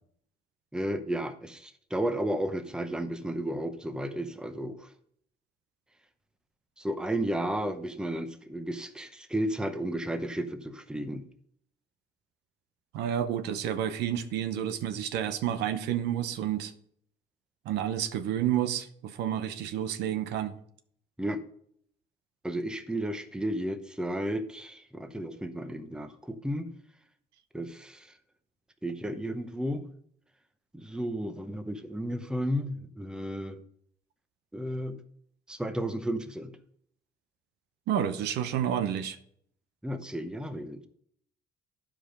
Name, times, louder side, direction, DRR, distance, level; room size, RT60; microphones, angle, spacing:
voice 1, 0.7-4.9 6.8-11.3 21.2-21.4 22.4-26.7 27.5-28.1 28.8-29.8 30.7-33.6 34.5-35.0 35.5-36.6 39.8-40.9, right 1 dB, 5° right, 0.8 m, -33 dB
voice 2, 12.9-16.7 17.7-20.5 37.9-39.2, right 10 dB, 85° right, 0.8 m, -30 dB
11.0 x 5.0 x 5.1 m
cardioid pair, 110°, 17 cm